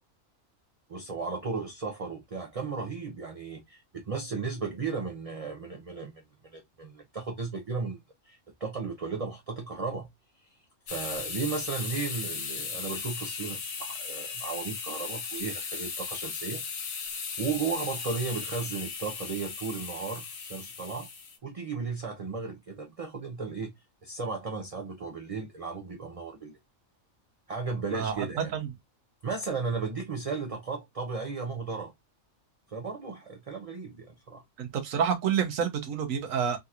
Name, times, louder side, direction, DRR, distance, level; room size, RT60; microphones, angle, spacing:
voice 1, 0.9-8.0 8.2-10.1 10.4-10.6 10.9-16.6 17.4-21.1 21.4-23.7 24.0-26.6 27.5-28.5 29.2-31.9 32.7-34.4, right 4 dB, 45° right, 0.5 m, -35 dB
sound 1, 10.9-21.4, left 5 dB, 80° left, 1.2 m, -37 dB
voice 2, 27.9-28.3 28.5-28.7 34.6-36.6, right 7 dB, 85° right, 1.2 m, -28 dB
3.7 x 2.8 x 2.3 m
omnidirectional pair, 1.4 m